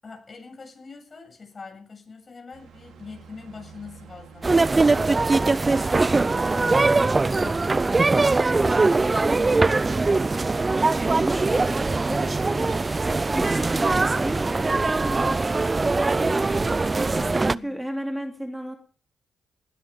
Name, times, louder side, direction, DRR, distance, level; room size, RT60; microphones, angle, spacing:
voice 1, 0.0-7.7 16.5-16.8 17.4-17.8, left 4 dB, 45° left, 2 dB, 7.6 m, -44 dB
sound 1, 2.5-13.8, right 7 dB, 85° right, 3.2 m, -48 dB
sound 2, 4.4-17.6, right 3 dB, 35° right, 0.6 m, -21 dB
voice 2, 8.5-10.4 10.7-15.3 16.2-18.8, equal, 5° right, 4 dB, 2.9 m, -35 dB
19.5 x 10.5 x 5.2 m, 0.42 s
supercardioid pair, 50°, 0 cm